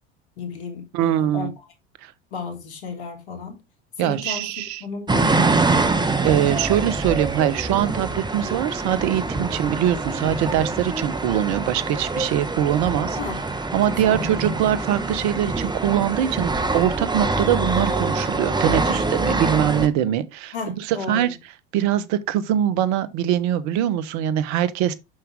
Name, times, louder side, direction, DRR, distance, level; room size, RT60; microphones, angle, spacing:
voice 1, 0.4-1.5 2.3-3.6 4.0-4.5 4.8-5.6 13.1-13.4 13.8-14.6 20.5-21.3, left 4 dB, 75° left, 2.9 m, -33 dB
voice 2, 0.9-1.5 2.0-2.1 4.0-4.8 6.2-13.2 13.7-21.4 21.7-24.9, right 11 dB, 55° right, 1.1 m, -23 dB
sound 1, 5.1-19.9, right 3 dB, 15° right, 1.4 m, -25 dB
7.8 x 6.0 x 3.5 m
hypercardioid pair, 75°, 33 cm